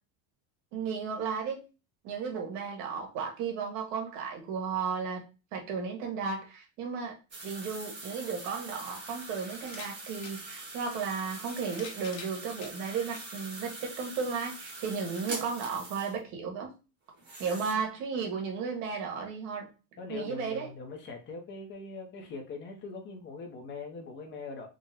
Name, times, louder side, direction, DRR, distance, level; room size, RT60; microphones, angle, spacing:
voice 1, 0.7-1.6 2.0-5.2 5.5-7.2 7.4-16.7 17.4-19.7 20.1-20.7, right 5 dB, 65° right, 2 dB, 1.3 m, -34 dB
sound 1, 7.3-16.2 17.1-17.7, right 2 dB, 20° right, 0.8 m, -43 dB
sound 2, 8.2-8.3 9.6-10.4 11.4-12.8 13.5-13.6 14.9-15.0, left 5 dB, 50° left, 1.1 m, -46 dB
voice 2, 20.0-24.7, left 4 dB, 25° left, 3 dB, 0.5 m, -42 dB
3.8 x 2.0 x 4.0 m, 0.31 s
cardioid pair, 175°, 49 cm